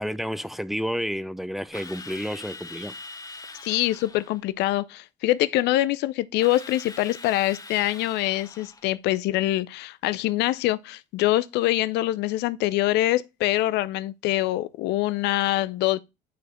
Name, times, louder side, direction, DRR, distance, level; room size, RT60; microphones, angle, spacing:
voice 1, 0.0-2.9, equal, ahead, 0.6 m, -30 dB
Drill, 1.7-4.4 6.4-8.9, left 3 dB, 20° left, 1.2 m, -42 dB
voice 2, 3.6-16.0, left 16 dB, 60° left, 0.5 m, -24 dB
9.0 x 4.6 x 3.1 m
hypercardioid pair, 60°, 20 cm